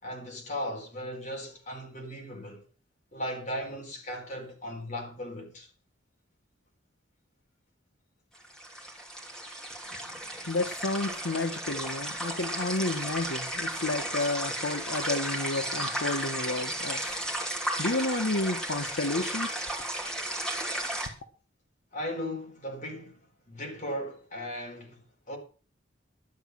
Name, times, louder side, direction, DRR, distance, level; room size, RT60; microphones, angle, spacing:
voice 1, 0.0-2.6 3.1-5.7 21.9-25.4, equal, 40° left, 4.4 m, -37 dB
sound 1, 8.4-21.1, right 1 dB, 5° left, 2.9 m, -34 dB
voice 2, 10.5-17.2 17.8-19.6, left 2 dB, 75° left, 1.2 m, -31 dB
12.0 x 9.4 x 6.3 m
head